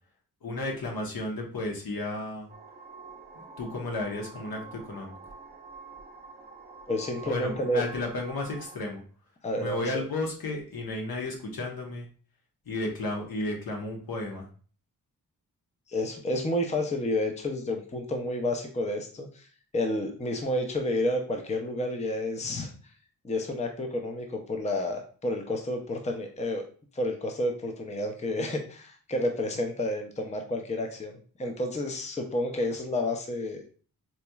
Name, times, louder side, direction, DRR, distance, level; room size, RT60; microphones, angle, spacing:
voice 1, 0.4-2.5 3.6-5.1 7.2-9.0 9.5-12.1 12.7-14.5, left 2 dB, 70° left, 0 dB, 1.1 m, -33 dB
sound 1, 2.5-8.8, right 4 dB, 25° right, 0.6 m, -47 dB
voice 2, 6.9-7.8 9.4-10.0 15.9-19.5 19.7-22.7 23.2-26.6 26.9-33.7, left 1 dB, 20° left, 3 dB, 0.5 m, -30 dB
4.1 x 2.8 x 2.3 m, 0.42 s
wide cardioid pair, 90°, 37 cm